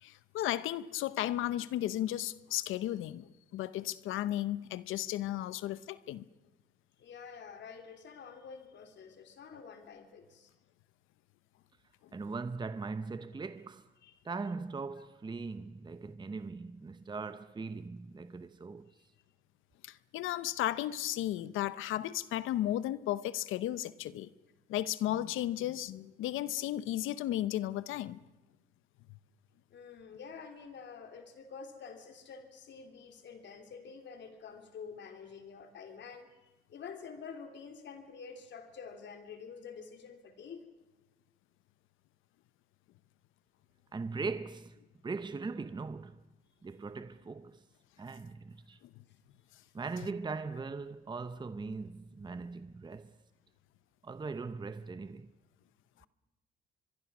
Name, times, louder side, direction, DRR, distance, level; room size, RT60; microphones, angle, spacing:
voice 1, 0.0-6.2 19.8-24.3 24.7-28.2, left 13 dB, 85° left, 0.8 m, -34 dB
voice 2, 7.0-10.5 14.0-14.1 29.7-40.7 46.6-47.1 49.6-49.7, left 6 dB, 65° left, 3.1 m, -48 dB
voice 3, 12.1-13.9 14.2-18.9 43.9-44.8 45.0-46.2 46.6-47.6 48.0-48.8 49.7-53.2 54.0-55.3, right 4 dB, 20° right, 0.8 m, -40 dB
24.0 x 23.0 x 6.2 m
cardioid pair, 90°, 20 cm